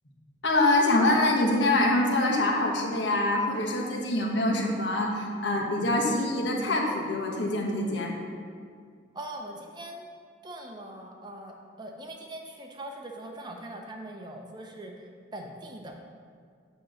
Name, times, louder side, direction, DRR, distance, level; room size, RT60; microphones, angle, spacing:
voice 1, 0.4-8.1, left 2 dB, 70° left, -1 dB, 1.1 m, -25 dB
voice 2, 9.1-10.1 10.4-15.9, right 1 dB, 20° right, 2 dB, 0.6 m, -41 dB
8.6 x 3.0 x 6.2 m, 2.1 s
head